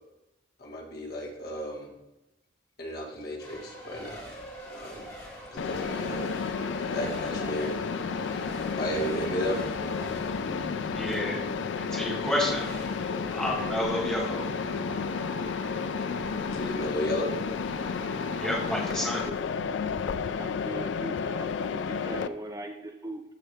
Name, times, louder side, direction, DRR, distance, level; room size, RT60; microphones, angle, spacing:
voice 1, 0.6-1.9 2.8-4.3 4.7-5.0 5.5-6.3 6.9-7.8 8.8-9.6 16.5-17.3, equal, 60° left, -1 dB, 1.7 m, -33 dB
Race car auto racing / Accelerating revving vroom / Mechanisms, 3.4-15.9, equal, 20° left, 2.9 m, -45 dB
Mechanisms, 5.6-22.3, left 5 dB, 85° left, 0.4 m, -32 dB
Car passing by / Traffic noise roadway noise, 5.7-19.0, right 2 dB, 60° right, 0.9 m, -44 dB
voice 2, 10.9-11.4 11.8-12.7 13.3-14.5 18.4-19.2, left 1 dB, 5° left, -4 dB, 1.8 m, -30 dB
voice 3, 18.9-19.4 20.4-23.2, right 1 dB, 20° right, 5 dB, 0.4 m, -40 dB
13.5 x 4.6 x 3.4 m, 0.96 s
head